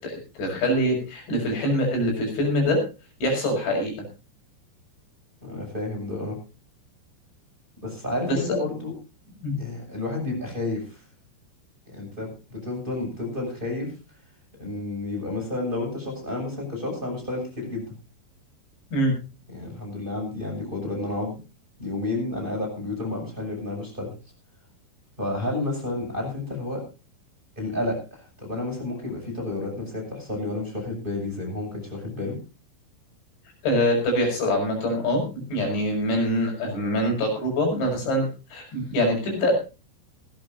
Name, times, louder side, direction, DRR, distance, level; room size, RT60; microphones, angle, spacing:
voice 1, 0.0-2.8 3.2-3.9 8.2-8.6 9.4-9.6 18.9-19.1 33.6-39.5, equal, 70° left, 2 dB, 8.6 m, -24 dB
voice 2, 5.4-6.4 7.8-8.9 9.5-11.0 11.9-13.9 14.6-17.9 19.5-21.4 21.8-24.1 25.2-26.8 27.6-32.4, left 2 dB, 10° right, 0 dB, 6.9 m, -31 dB
19.5 x 16.5 x 2.7 m, 0.31 s
omnidirectional pair, 5.5 m